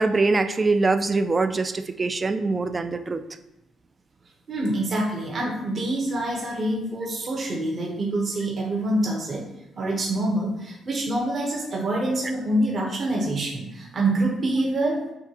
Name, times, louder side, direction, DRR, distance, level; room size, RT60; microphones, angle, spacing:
voice 1, 0.0-3.2, right 3 dB, 30° right, 10 dB, 0.3 m, -23 dB
voice 2, 4.5-9.4 9.8-15.1, right 1 dB, 50° right, -3 dB, 1.1 m, -26 dB
6.8 x 2.4 x 3.0 m, 0.90 s
cardioid pair, 90°, 0 cm